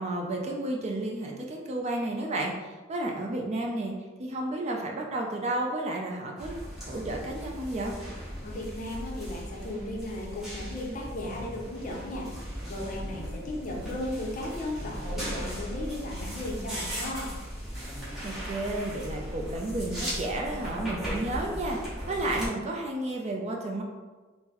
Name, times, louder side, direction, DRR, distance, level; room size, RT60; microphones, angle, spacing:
voice 1, 0.0-2.5 2.9-3.9 4.2-6.5 6.9-7.9 18.2-21.8 22.1-23.8, right 2 dB, 35° right, 0 dB, 0.4 m, -32 dB
sound 1, 6.4-22.5, equal, ahead, 0.8 m, -37 dB
voice 2, 8.4-12.3 12.7-17.3, left 1 dB, 40° left, -1 dB, 0.6 m, -36 dB
3.7 x 2.0 x 2.9 m, 1.3 s
head